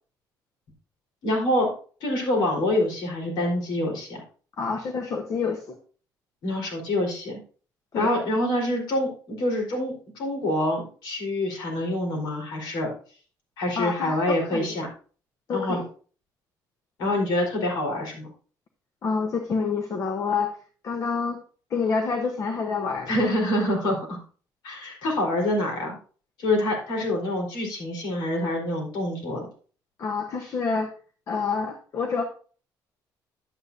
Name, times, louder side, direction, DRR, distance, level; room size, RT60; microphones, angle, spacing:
voice 1, 1.2-1.7 2.0-4.2 6.4-7.4 7.9-12.9 13.6-14.9 15.5-15.8 17.0-18.3 23.1-24.2 24.6-26.0 26.4-29.4, left 1 dB, 80° left, 0 dB, 4.1 m, -26 dB
voice 2, 4.6-5.8 7.9-8.1 13.8-14.7 15.5-15.9 19.0-20.6 20.8-21.4 21.7-23.2 30.0-30.9 31.3-32.2, left 5 dB, 45° left, 6 dB, 1.0 m, -27 dB
10.5 x 8.8 x 2.7 m, 0.41 s
cardioid pair, 135°, 7 cm